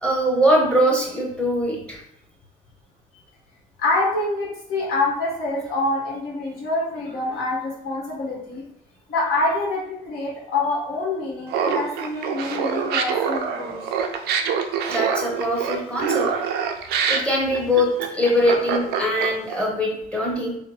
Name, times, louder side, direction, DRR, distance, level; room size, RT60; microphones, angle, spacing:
voice 1, 0.0-2.0 14.9-16.3 17.1-20.6, equal, 5° left, -3 dB, 0.9 m, -22 dB
voice 2, 3.8-8.6 9.1-13.8, left 2 dB, 70° left, -4 dB, 1.4 m, -26 dB
Laughter, 11.5-19.5, right 7 dB, 75° right, 0.4 m, -25 dB
3.2 x 2.1 x 3.1 m, 0.75 s
cardioid pair, 110°, 17 cm